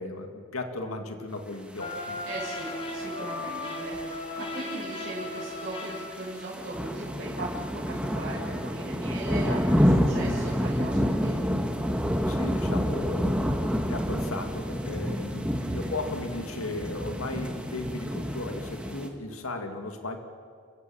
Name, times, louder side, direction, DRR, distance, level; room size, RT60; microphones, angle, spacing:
voice 1, 0.0-2.2 12.3-20.2, left 2 dB, 90° left, 5 dB, 2.0 m, -36 dB
sound 1, 1.8-6.6, left 2 dB, 25° left, 2.1 m, -36 dB
sound 2, 1.9-19.1, equal, 5° right, 1.5 m, -29 dB
voice 2, 2.2-11.4 15.5-15.9, right 1 dB, 40° right, -8 dB, 6.5 m, -38 dB
29.0 x 15.5 x 7.6 m, 2.2 s
head